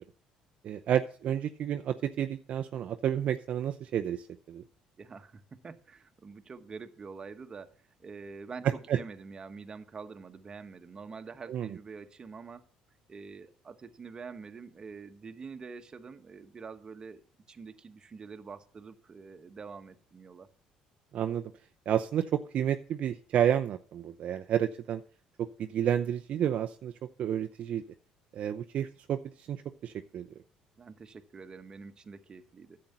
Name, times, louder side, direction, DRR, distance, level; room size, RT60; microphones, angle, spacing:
voice 1, 0.6-4.6 8.6-9.0 11.5-11.8 21.1-21.4 21.9-25.0 25.4-26.9 27.2-27.8 28.3-30.3, right 10 dB, 55° right, 7 dB, 0.6 m, -30 dB
voice 2, 5.0-12.7 13.1-20.5 30.8-32.8, right 5 dB, 30° right, 7 dB, 1.2 m, -46 dB
10.5 x 7.8 x 5.7 m, 0.42 s
supercardioid pair, 95°, 3 cm